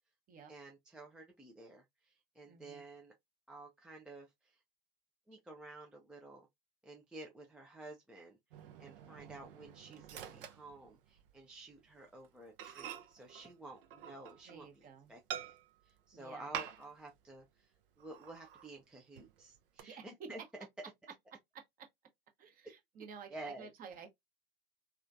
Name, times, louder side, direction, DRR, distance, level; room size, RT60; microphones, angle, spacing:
voice 1, 0.5-3.1 3.5-4.6 5.3-6.5 6.8-8.4 8.8-15.5 15.8-17.7 18.0-20.4 22.6-22.7 23.3-23.7, right 2 dB, 5° right, 0.4 m, -52 dB
voice 2, 2.4-2.8 14.5-15.1 16.1-16.5 19.8-20.0 21.5-21.9 22.4-24.1, right 6 dB, 30° right, 0.9 m, -53 dB
Microwave oven, 8.5-11.4 11.7-11.9 12.2-12.3 12.6-14.7 15.3-15.9 16.5-17.1 17.4-17.5 18.0-18.7 19.2-19.8, right 9 dB, 65° right, 0.7 m, -47 dB
3.0 x 2.4 x 2.5 m
hypercardioid pair, 95°, 30 cm